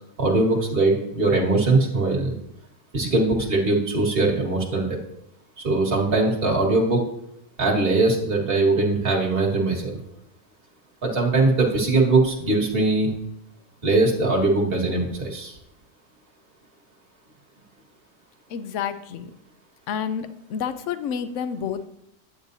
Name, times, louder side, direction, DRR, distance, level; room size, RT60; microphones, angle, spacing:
voice 1, 0.2-2.3 2.9-5.0 5.6-7.0 7.6-10.0 11.0-13.1 13.8-15.5, right 2 dB, 40° right, -1 dB, 1.8 m, -21 dB
voice 2, 18.5-19.3 19.9-21.9, left 7 dB, 65° left, 10 dB, 0.9 m, -29 dB
11.0 x 8.8 x 2.7 m, 0.77 s
omnidirectional pair, 1.6 m